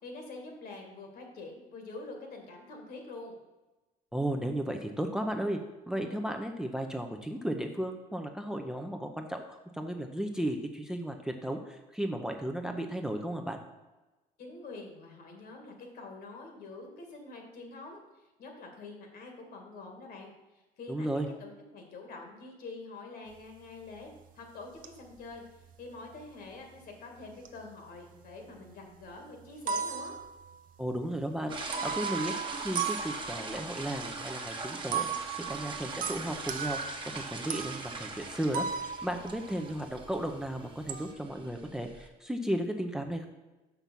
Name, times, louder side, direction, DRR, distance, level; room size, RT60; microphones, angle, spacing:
voice 1, 0.0-3.4 14.4-18.0 18.4-20.3 20.8-21.1 21.4-24.1 24.4-30.2, left 3 dB, 65° left, 3 dB, 2.0 m, -46 dB
voice 2, 4.1-5.6 5.9-13.6 20.9-21.3 30.8-31.6 31.8-32.3 32.6-35.1 35.4-36.8 37.1-43.3, right 1 dB, 5° right, 4 dB, 0.6 m, -34 dB
sound 1, 23.3-23.4 23.9-24.3 24.8-25.4 25.6-26.2 27.2-27.6 27.9-28.7 29.1-29.2 29.4-31.0 31.7-33.7 34.9-40.2 40.4-41.1, right 6 dB, 55° right, 0.7 m, -37 dB
sound 2, 31.5-42.1, right 3 dB, 30° right, 1.1 m, -41 dB
6.0 x 5.9 x 5.3 m, 1.1 s
cardioid pair, 110°, 17 cm